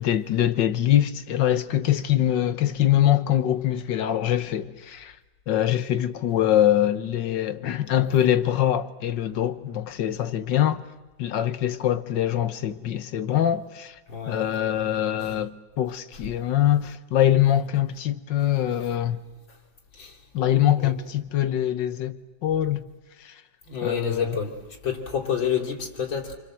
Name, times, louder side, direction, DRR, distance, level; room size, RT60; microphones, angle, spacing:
voice 1, 0.0-5.2 5.5-10.8 11.2-14.0 14.3-19.2 20.3-22.9 23.2-23.3 23.8-24.4, left 11 dB, 70° left, 1.7 m, -23 dB
voice 2, 14.1-14.6 20.0-20.1 20.8-20.9 23.7-24.6 24.8-26.4, left 7 dB, 90° left, 3.9 m, -28 dB
27.0 x 26.0 x 7.7 m
omnidirectional pair, 2.1 m